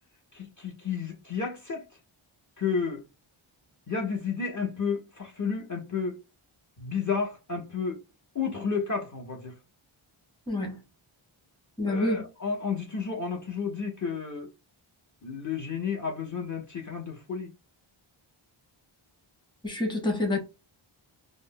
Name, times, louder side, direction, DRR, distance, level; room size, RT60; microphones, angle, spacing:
voice 1, 0.3-1.8 2.6-3.0 3.9-6.2 6.8-8.0 8.3-9.5 11.9-14.5 15.2-17.5, left 5 dB, 35° left, 0.9 m, -31 dB
voice 2, 10.5-10.8 11.8-12.2 19.6-20.4, left 2 dB, 10° left, 0.9 m, -27 dB
2.4 x 2.1 x 3.6 m
wide cardioid pair, 90°, 50 cm